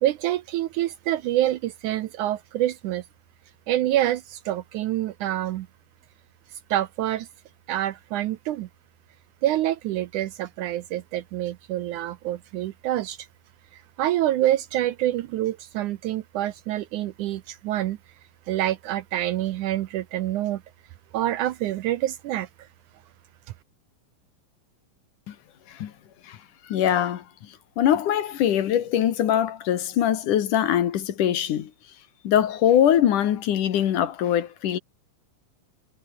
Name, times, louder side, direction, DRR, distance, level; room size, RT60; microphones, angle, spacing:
voice 1, 0.0-3.0 3.7-5.7 6.7-7.3 7.7-8.7 9.4-13.2 13.7-18.0 18.5-20.6 21.1-22.5, right 13 dB, 75° right, 2.0 m, -26 dB
voice 2, 26.7-31.7 32.2-34.8, left 10 dB, 65° left, 2.9 m, -22 dB
omnidirectional pair, 4.1 m